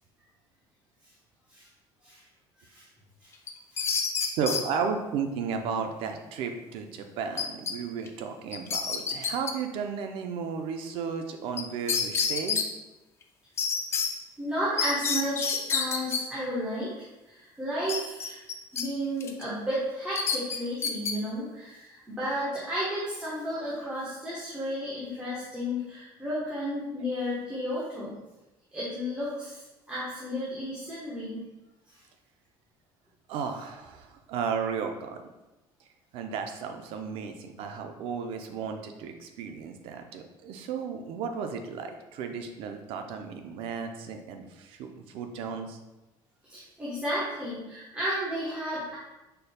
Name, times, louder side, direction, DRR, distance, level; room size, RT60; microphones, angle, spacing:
sound 1, 3.5-4.6 7.4-7.7 8.1-8.2 8.5-9.5 11.6-11.7 11.9-12.7 13.6-14.1 14.8-16.2 17.9-18.8 19.2-19.4 20.2-21.1, left 5 dB, 25° left, 0.4 m, -28 dB
voice 1, 4.4-12.6 33.3-35.2 36.1-45.8, right 6 dB, 70° right, 6 dB, 0.6 m, -34 dB
voice 2, 14.4-16.9 17.3-18.4 18.7-28.1 28.7-29.6 29.9-31.4 46.5-49.0, equal, 10° right, -9 dB, 1.1 m, -32 dB
5.0 x 4.5 x 2.2 m, 1.0 s
cardioid pair, 155°, 10 cm